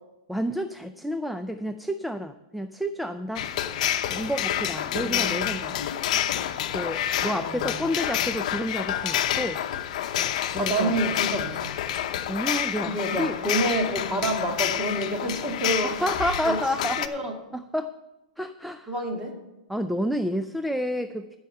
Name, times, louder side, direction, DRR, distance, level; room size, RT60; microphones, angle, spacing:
voice 1, 0.3-3.5 4.1-5.9 6.7-9.6 10.5-10.9 12.3-13.4 14.1-14.2 15.8-17.1 17.5-17.9 18.4-18.9 19.7-21.4, equal, ahead, 7 dB, 0.3 m, -30 dB
sound 1, 3.4-17.1, left 11 dB, 65° left, 0.8 m, -28 dB
voice 2, 4.9-5.7 7.4-7.8 10.6-11.7 12.9-15.9 16.4-16.6 17.0-17.3 18.9-19.3, right 1 dB, 20° right, 1 dB, 2.1 m, -28 dB
13.0 x 5.6 x 7.7 m, 1.0 s
supercardioid pair, 150°, 4 cm